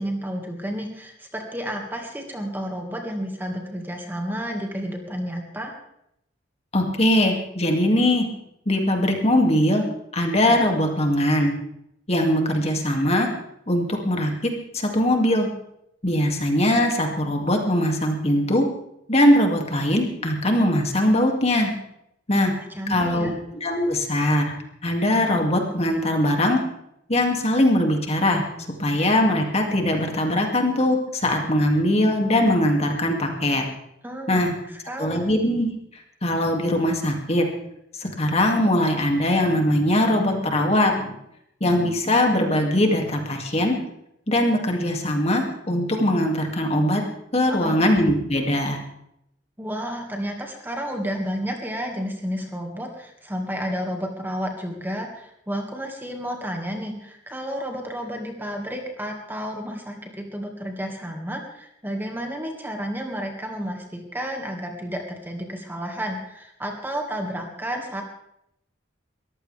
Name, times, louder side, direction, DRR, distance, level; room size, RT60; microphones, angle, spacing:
voice 1, 0.0-5.7 22.5-23.4 34.0-34.4 34.7-35.3 47.6-47.8 49.6-68.0, equal, 10° right, 2 dB, 1.9 m, -31 dB
voice 2, 6.7-8.3 8.7-9.8 10.1-11.5 12.1-13.3 13.7-15.5 16.0-18.7 19.1-21.7 22.3-22.5 22.9-23.3 23.6-24.4 24.8-26.6 27.1-28.4 28.8-33.6 34.3-34.5 35.0-35.7 36.2-37.4 38.0-41.1 41.6-43.8 44.3-47.0 47.3-48.8, left 1 dB, 35° left, 2 dB, 2.5 m, -21 dB
22.0 x 15.0 x 3.5 m, 0.77 s
head